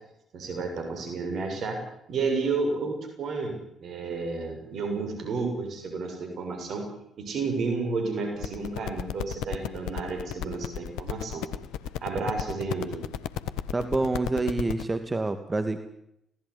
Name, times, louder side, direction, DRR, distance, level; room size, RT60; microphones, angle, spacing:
voice 1, 0.3-1.8 2.1-3.5 3.8-6.9 7.2-11.4 12.0-13.1, right 4 dB, 60° right, 4 dB, 6.9 m, -31 dB
sound 1, 8.4-14.8, left 10 dB, 75° left, 1.3 m, -34 dB
voice 2, 13.7-15.8, right 2 dB, 25° right, 9 dB, 2.4 m, -27 dB
26.0 x 18.5 x 10.0 m, 0.81 s
hypercardioid pair, 45°, 0 cm